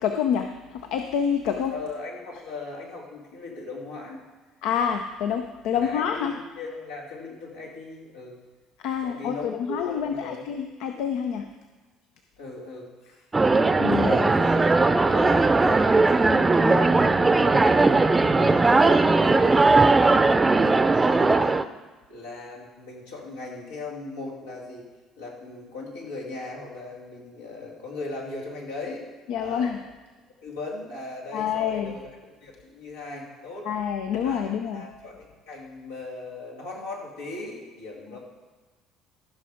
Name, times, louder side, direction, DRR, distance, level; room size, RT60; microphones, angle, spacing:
voice 1, 0.0-0.5 0.9-1.7 4.6-6.3 8.8-11.5 13.8-14.2 29.3-29.8 31.3-31.9 33.7-34.8, left 8 dB, 70° left, 5 dB, 0.7 m, -27 dB
voice 2, 1.7-4.2 5.7-8.4 9.0-10.4 12.4-13.2 13.9-20.1 20.5-21.6 22.1-24.9 25.2-29.1 29.4-29.8 30.4-33.7 34.2-38.2, left 2 dB, 90° left, -4 dB, 3.0 m, -38 dB
sound 1, 13.3-21.6, right 3 dB, 20° right, 0.6 m, -19 dB
14.5 x 6.0 x 5.0 m, 1.3 s
hypercardioid pair, 60°, 0 cm